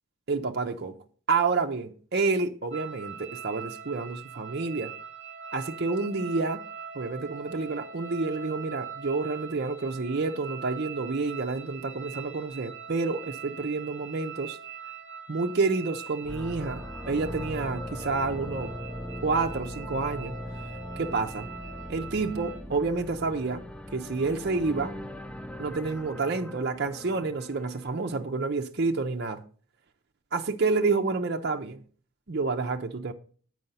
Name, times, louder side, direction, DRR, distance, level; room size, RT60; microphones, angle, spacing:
voice 1, 0.3-0.9 1.3-4.9 5.5-6.6 6.9-14.6 15.3-18.7 19.2-20.3 21.0-21.5 21.9-23.6 23.9-24.9 25.6-29.4 30.3-31.8 32.3-33.1, right 3 dB, 50° right, 0.6 m, -29 dB
sound 1, 2.7-22.6, right 6 dB, 30° right, 1.3 m, -42 dB
sound 2, 16.2-28.2, equal, 5° left, 0.3 m, -40 dB
7.8 x 4.8 x 5.5 m
head